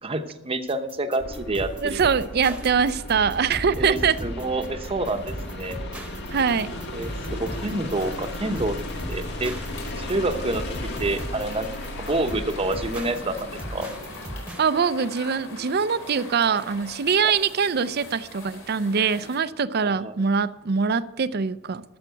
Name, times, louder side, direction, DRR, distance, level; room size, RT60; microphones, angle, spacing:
voice 1, 0.0-2.0 3.8-5.8 6.9-8.8 9.1-9.5 10.0-10.6 11.0-11.7 12.0-13.9 19.8-20.1, right 2 dB, 30° right, 0.9 m, -28 dB
sound 1, 0.7-14.7, right 1 dB, 5° right, 1.1 m, -38 dB
sound 2, 1.2-14.4, left 1 dB, 55° left, 1.8 m, -36 dB
voice 2, 1.8-4.2 6.3-6.7 14.6-21.8, right 6 dB, 50° right, 0.5 m, -23 dB
sound 3, 6.4-19.4, left 2 dB, 80° left, 4.4 m, -43 dB
13.0 x 7.3 x 7.9 m
head